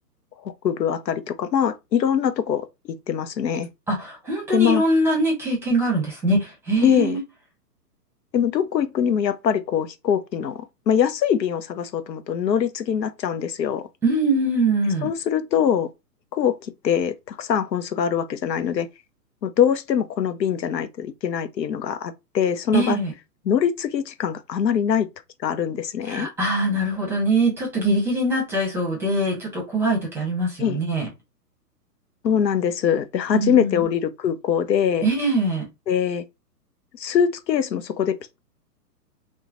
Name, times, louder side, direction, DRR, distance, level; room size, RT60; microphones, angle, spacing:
voice 1, 0.4-3.7 4.5-4.8 6.8-7.2 8.3-10.6 10.9-13.9 15.0-15.9 16.3-18.9 19.4-23.0 23.5-25.1 25.4-26.3 30.6-30.8 32.2-35.1 35.9-36.2 36.9-38.4, left 8 dB, 90° left, 0.6 m, -23 dB
voice 2, 3.9-7.2 14.0-15.1 22.7-23.1 26.1-31.1 33.3-33.8 35.0-35.7, right 2 dB, 5° right, 0.8 m, -23 dB
3.0 x 2.1 x 2.4 m
hypercardioid pair, 130°, 49 cm